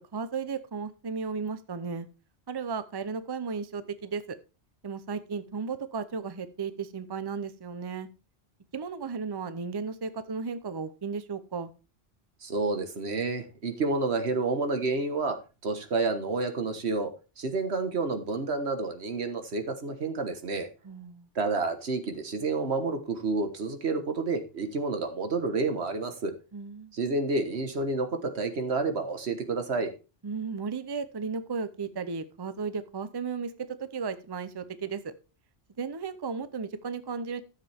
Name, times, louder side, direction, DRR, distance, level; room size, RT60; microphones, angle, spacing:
voice 1, 0.1-2.1 2.5-4.4 4.8-8.1 8.7-11.7 20.8-21.3 26.5-26.9 30.2-35.1 35.8-37.4, right 5 dB, 30° right, 13 dB, 0.6 m, -34 dB
voice 2, 12.4-15.4 15.6-20.7 21.3-26.3 26.9-29.9, right 3 dB, 85° right, 7 dB, 1.6 m, -29 dB
12.5 x 7.4 x 3.5 m, 0.31 s
omnidirectional pair, 1.1 m